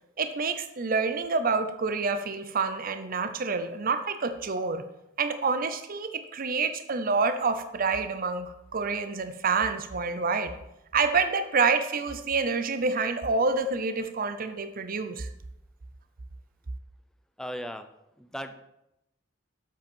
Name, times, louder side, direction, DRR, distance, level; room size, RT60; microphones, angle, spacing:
voice 1, 0.2-4.8 5.2-10.5 10.9-15.3, right 4 dB, 45° right, 10 dB, 0.6 m, -27 dB
voice 2, 17.4-17.9 18.2-18.5, equal, 5° left, 8 dB, 0.6 m, -36 dB
7.7 x 7.6 x 5.4 m, 0.87 s
head